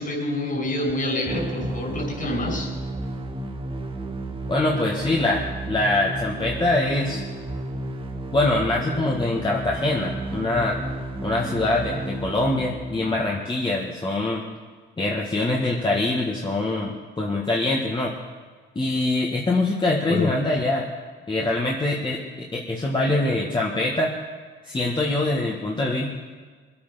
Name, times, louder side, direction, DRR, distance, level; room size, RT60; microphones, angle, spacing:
voice 1, 0.0-2.7 20.1-20.3, left 1 dB, 45° left, 0 dB, 5.9 m, -27 dB
sound 1, 1.3-13.2, right 1 dB, 25° right, 1.7 m, -32 dB
voice 2, 4.5-7.2 8.3-10.8 11.2-14.4 15.0-18.1 18.8-20.9 21.3-24.1 24.6-26.2, left 2 dB, 25° left, -2 dB, 1.9 m, -24 dB
22.0 x 8.7 x 5.9 m, 1.5 s
cardioid pair, 90°, 20 cm